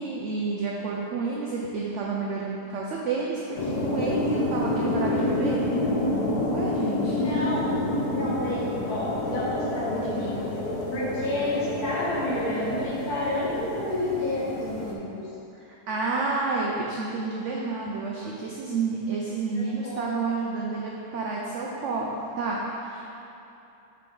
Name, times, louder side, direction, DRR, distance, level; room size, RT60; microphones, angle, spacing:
voice 1, 0.0-5.6 6.5-7.2 15.5-23.1, right 4 dB, 65° right, -3 dB, 0.7 m, -30 dB
sound 1, 3.6-14.9, left 2 dB, 90° left, 1.4 m, -28 dB
voice 2, 7.1-7.8 8.1-10.6 10.9-15.2 19.3-20.0, left 1 dB, 70° left, -8 dB, 1.8 m, -30 dB
5.6 x 4.9 x 3.8 m, 2.8 s
omnidirectional pair, 1.7 m